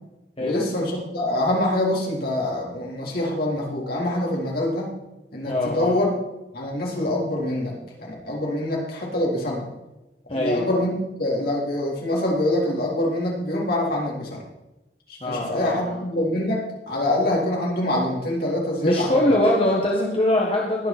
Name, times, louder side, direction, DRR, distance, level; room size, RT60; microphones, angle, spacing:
voice 1, 0.4-4.9 5.3-6.2 6.5-9.7 10.3-14.4 15.1-19.2, left 1 dB, 60° left, -3 dB, 4.0 m, -25 dB
voice 2, 5.4-6.0 10.3-10.6 15.2-16.0 18.8-20.9, left 1 dB, 35° left, -2 dB, 1.7 m, -22 dB
21.5 x 7.4 x 4.4 m, 0.98 s
head